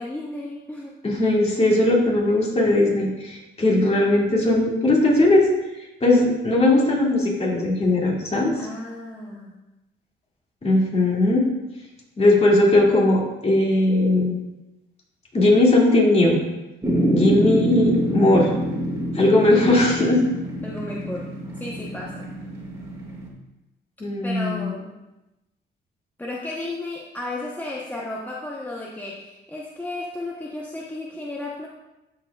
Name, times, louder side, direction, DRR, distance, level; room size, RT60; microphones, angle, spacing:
voice 1, 0.0-1.0 8.6-9.6 20.6-22.3 24.2-24.9 26.2-31.7, left 2 dB, 10° left, -4 dB, 0.9 m, -33 dB
voice 2, 1.0-5.5 5.8-8.5 10.6-11.4 12.2-14.4 15.3-16.4 17.1-18.5 19.1-20.2 24.0-24.7, left 2 dB, 30° left, -3 dB, 2.4 m, -19 dB
sound 1, 16.8-23.3, equal, 15° right, 2.0 m, -26 dB
13.5 x 4.7 x 2.4 m, 0.98 s
cardioid pair, 90°, 20 cm